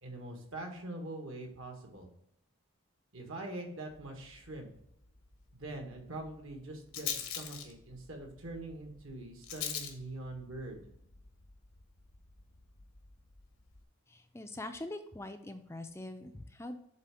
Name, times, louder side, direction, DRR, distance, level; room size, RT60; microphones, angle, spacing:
voice 1, 0.0-2.1 3.1-4.7 5.5-10.8, right 2 dB, 65° right, 3 dB, 1.6 m, -43 dB
Rattle, 3.9-13.8, left 8 dB, 85° left, 1.1 m, -45 dB
voice 2, 14.1-16.8, left 1 dB, 10° left, 7 dB, 0.4 m, -43 dB
7.7 x 3.7 x 4.8 m, 0.75 s
head